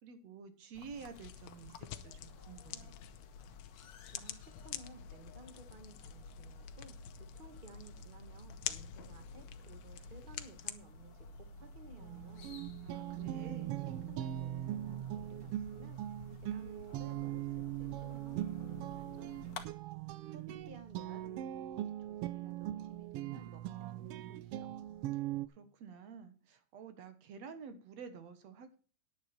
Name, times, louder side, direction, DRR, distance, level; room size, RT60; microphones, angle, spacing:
voice 1, 0.0-2.9 12.8-13.8 25.5-28.8, right 6 dB, 65° right, 9 dB, 2.4 m, -50 dB
sound 1, 0.7-19.6, left 3 dB, 55° left, 2.0 m, -52 dB
sound 2, 0.9-10.7, left 12 dB, 75° left, 1.9 m, -48 dB
voice 2, 4.1-12.5 13.2-16.0 16.4-19.6 20.3-21.5 21.8-24.7, right 3 dB, 30° right, 8 dB, 0.9 m, -56 dB
sound 3, 12.0-25.5, right 13 dB, 85° right, 1.3 m, -40 dB
10.5 x 10.0 x 4.4 m, 0.39 s
omnidirectional pair, 3.4 m